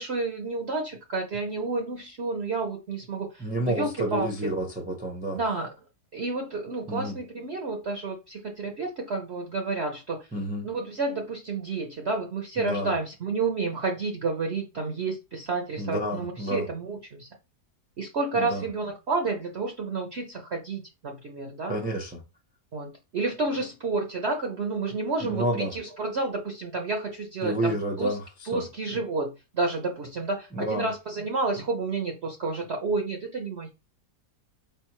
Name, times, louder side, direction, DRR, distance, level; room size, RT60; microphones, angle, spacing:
voice 1, 0.0-4.3 5.3-5.7 6.1-10.3 10.6-17.3 18.0-21.7 22.7-28.2 28.4-33.7, right 3 dB, 50° right, 0.9 m, -30 dB
voice 2, 3.4-5.4 6.9-7.2 10.3-10.7 12.6-12.9 15.8-16.6 18.4-18.6 21.7-22.2 25.3-25.7 27.4-28.2 28.5-28.6 30.5-30.9, right 1 dB, 10° right, 0.5 m, -29 dB
4.9 x 3.4 x 3.0 m
omnidirectional pair, 1.8 m